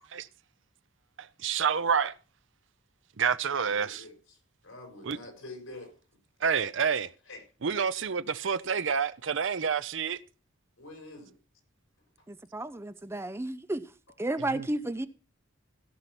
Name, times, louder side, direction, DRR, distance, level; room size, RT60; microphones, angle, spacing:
voice 1, 1.4-2.1 3.2-4.0 5.0-5.2 6.4-7.1 7.6-10.2 14.5-14.6, right 6 dB, 65° right, 0.6 m, -28 dB
voice 2, 3.4-4.4 4.6-5.9 6.8-7.0 7.2-7.4 10.8-11.3 12.2-12.3, left 2 dB, 80° left, 4.4 m, -47 dB
voice 3, 12.3-13.9 14.2-15.1, right 2 dB, 15° right, 0.5 m, -33 dB
16.0 x 5.7 x 5.9 m
head